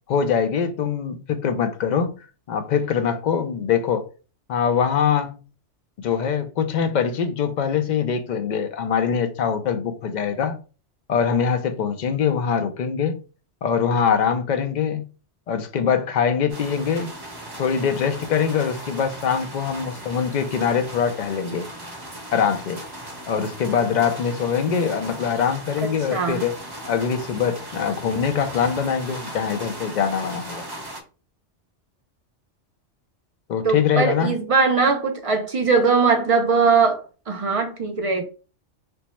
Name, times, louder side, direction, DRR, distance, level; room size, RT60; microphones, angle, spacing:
voice 1, 0.1-2.2 2.5-4.0 4.5-5.4 6.0-10.6 11.1-13.2 13.6-15.0 15.5-17.1 17.6-21.6 22.3-22.8 23.3-26.5 26.9-30.6 33.5-34.3, left 7 dB, 60° left, 0.5 m, -23 dB
sound 1, 16.5-31.0, right 1 dB, 25° right, 0.7 m, -38 dB
voice 2, 25.8-26.4 33.6-38.2, right 4 dB, 65° right, 0.3 m, -20 dB
3.4 x 2.0 x 4.3 m
omnidirectional pair, 1.2 m